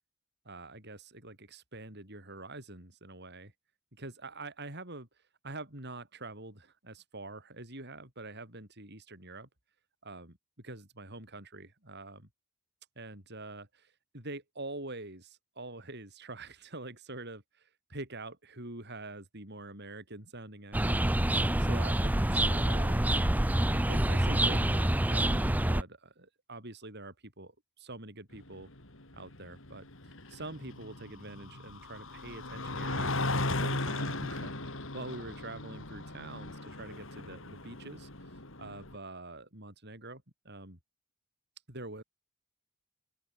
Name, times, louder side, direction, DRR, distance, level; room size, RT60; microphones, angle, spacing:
voice 1, 0.4-3.5 3.9-5.1 5.4-9.5 10.0-12.3 13.0-21.1 21.6-23.0 23.9-28.7 29.1-40.8 41.7-42.0, right 2 dB, 50° right, 7.9 m, -45 dB
sound 1, 20.7-25.8, right 1 dB, 5° right, 0.6 m, -27 dB
sound 2, 28.4-39.0, left 2 dB, 65° left, 4.5 m, -37 dB
open air
head